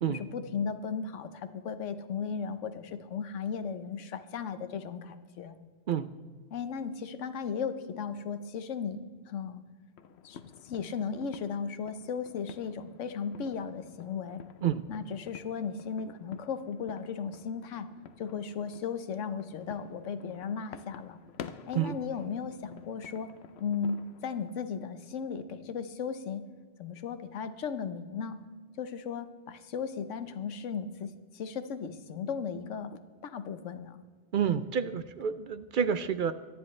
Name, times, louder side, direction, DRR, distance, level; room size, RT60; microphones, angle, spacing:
voice 1, 0.1-5.6 6.5-9.6 10.2-14.4 14.9-17.9 18.2-21.2 21.7-23.3 23.6-26.4 26.8-28.4 28.8-34.0, left 6 dB, 85° left, 10 dB, 1.2 m, -36 dB
sound 1, 10.0-24.5, left 8 dB, 65° left, 0.8 m, -50 dB
voice 2, 34.3-36.3, right 8 dB, 60° right, 12 dB, 0.5 m, -29 dB
24.0 x 10.0 x 3.2 m, 1.5 s
omnidirectional pair, 1.2 m